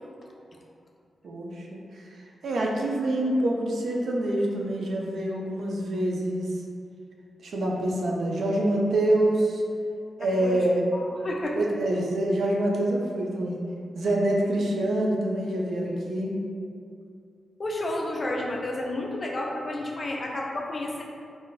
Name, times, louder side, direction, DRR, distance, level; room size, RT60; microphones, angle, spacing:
voice 1, 1.2-1.8 2.1-6.4 7.4-9.6 10.2-10.8 11.5-13.6 13.9-16.3, right 1 dB, 70° right, -2 dB, 0.4 m, -26 dB
voice 2, 10.2-11.6 17.6-21.0, left 1 dB, 35° left, -1 dB, 0.4 m, -31 dB
2.4 x 2.2 x 3.9 m, 2.4 s
wide cardioid pair, 150°, 0 cm